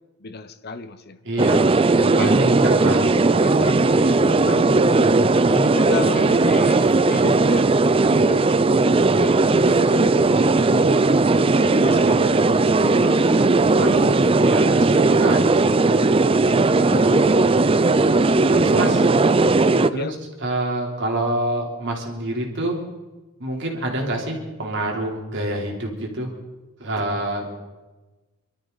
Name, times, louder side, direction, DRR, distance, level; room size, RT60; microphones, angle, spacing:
voice 1, 0.2-1.6 2.0-2.4 3.4-4.0 4.3-7.7 8.0-8.6 9.0-11.0 11.5-12.5 12.8-13.6 13.9-14.2 16.9-17.9 18.6-19.1 19.9-20.2, left 3 dB, 45° left, 10 dB, 0.8 m, -34 dB
voice 2, 1.3-1.7 2.0-3.6 3.9-4.4 13.8-14.0 14.4-16.0 18.5-19.0 19.9-20.1 20.4-22.8 23.4-26.3 26.8-27.5, right 1 dB, 55° right, 0 dB, 3.5 m, -27 dB
sound 1, 1.4-19.9, right 3 dB, 25° right, 0.4 m, -17 dB
25.0 x 13.5 x 4.1 m, 1.2 s
head